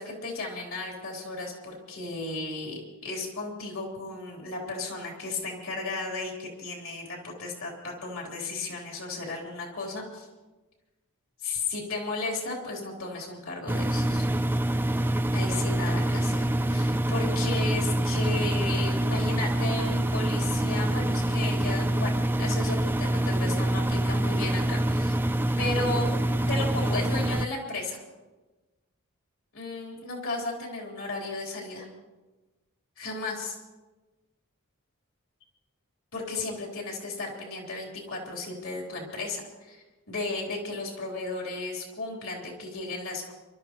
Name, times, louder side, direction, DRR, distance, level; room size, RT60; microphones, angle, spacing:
voice 1, 0.0-10.3 11.4-14.3 15.3-25.2 25.6-26.2 26.5-28.0 29.5-31.9 33.0-33.6 36.1-43.3, left 3 dB, 70° left, -2 dB, 3.9 m, -34 dB
Engine, 13.7-27.5, right 1 dB, 10° right, 0.4 m, -26 dB
28.5 x 13.0 x 3.1 m, 1.2 s
head